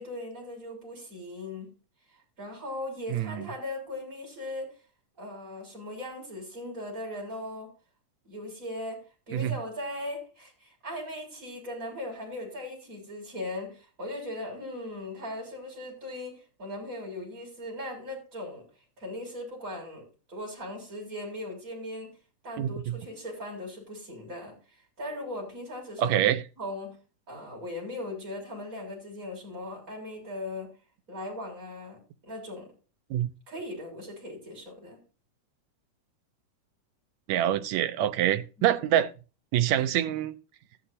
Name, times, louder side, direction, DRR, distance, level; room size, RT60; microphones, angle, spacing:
voice 1, 0.0-1.7 2.1-4.7 5.2-7.7 8.2-18.6 19.0-22.1 22.4-26.2 26.6-27.0 27.3-30.7 31.1-32.7 33.5-35.0, left 1 dB, 25° right, 7.3 m, -39 dB
voice 2, 3.1-3.4 9.3-9.5 22.6-22.7 26.0-26.4 33.1-33.3 37.3-39.1 39.5-40.3, right 11 dB, 75° right, 1.8 m, -25 dB
14.0 x 11.5 x 2.7 m
omnidirectional pair, 3.6 m